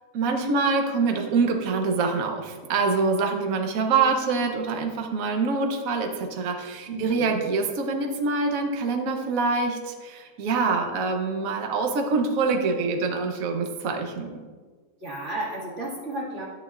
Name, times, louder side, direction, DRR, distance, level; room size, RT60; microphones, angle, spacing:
voice 1, 0.1-14.4, right 4 dB, 60° right, 3 dB, 1.2 m, -25 dB
voice 2, 6.9-7.4 15.0-16.5, right 1 dB, 45° right, -5 dB, 2.3 m, -33 dB
10.5 x 8.1 x 2.4 m, 1.4 s
omnidirectional pair, 1.7 m